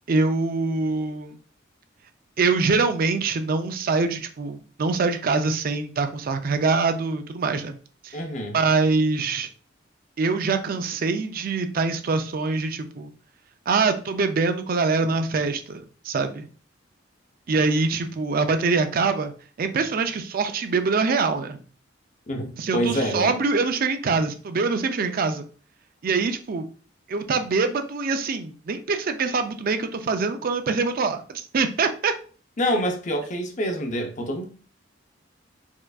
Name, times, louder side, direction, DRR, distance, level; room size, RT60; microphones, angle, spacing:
voice 1, 0.1-1.4 2.4-7.7 8.0-8.2 8.5-9.5 10.2-13.1 13.7-16.4 17.5-19.3 19.6-21.6 22.6-25.5 26.0-26.6 27.1-32.1, right 4 dB, 50° right, 0.4 m, -24 dB
voice 2, 8.1-8.6 22.3-23.4 32.6-34.4, equal, 40° left, 0.6 m, -26 dB
4.3 x 2.5 x 2.3 m
head